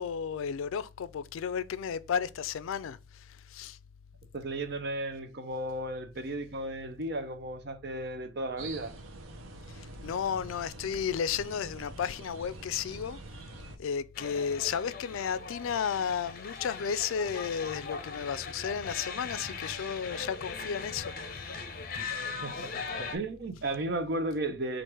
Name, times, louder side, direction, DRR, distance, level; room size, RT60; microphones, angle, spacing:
voice 1, 0.0-3.8 9.7-13.2 13.8-21.6 22.5-22.7, left 7 dB, 85° left, 0.4 m, -33 dB
voice 2, 4.3-8.9 22.0-22.7 23.0-24.8, right 1 dB, 55° right, 0.6 m, -35 dB
sound 1, 8.6-13.8, right 2 dB, 85° right, 0.7 m, -46 dB
sound 2, 14.1-23.2, left 4 dB, 45° left, 0.7 m, -39 dB
4.5 x 2.5 x 4.7 m
head